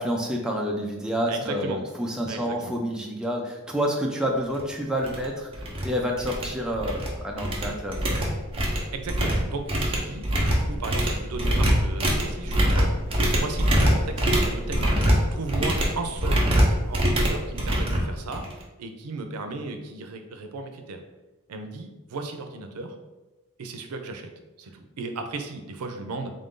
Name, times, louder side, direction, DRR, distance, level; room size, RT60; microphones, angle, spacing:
voice 1, 0.0-8.1, equal, 5° right, -1 dB, 0.4 m, -28 dB
voice 2, 1.3-1.8 2.3-2.8 8.9-12.9 13.4-14.9 15.3-16.4 16.8-18.4 18.8-21.0 21.5-22.9 23.6-24.3 24.6-26.3, right 3 dB, 90° right, 6 dB, 0.5 m, -35 dB
sound 1, 4.5-4.6 5.0-5.2 5.5-5.8 6.2-7.1 7.4-18.6, equal, 25° right, 0.7 m, -24 dB
3.6 x 2.6 x 3.6 m, 1.1 s
head